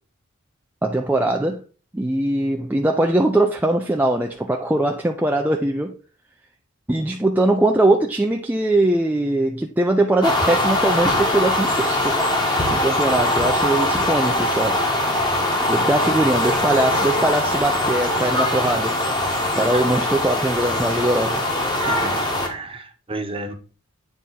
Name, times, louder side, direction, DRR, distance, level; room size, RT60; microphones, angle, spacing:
voice 1, 0.8-1.6 1.9-6.0 6.9-12.2 12.7-14.8 15.7-19.0 19.6-21.4, right 1 dB, 10° right, 0.4 m, -21 dB
sound 1, 10.2-22.5, left 1 dB, 20° left, 1.3 m, -21 dB
voice 2, 15.6-16.2 19.7-19.8 21.8-23.5, right 2 dB, 25° right, 1.0 m, -33 dB
9.1 x 3.6 x 4.1 m
head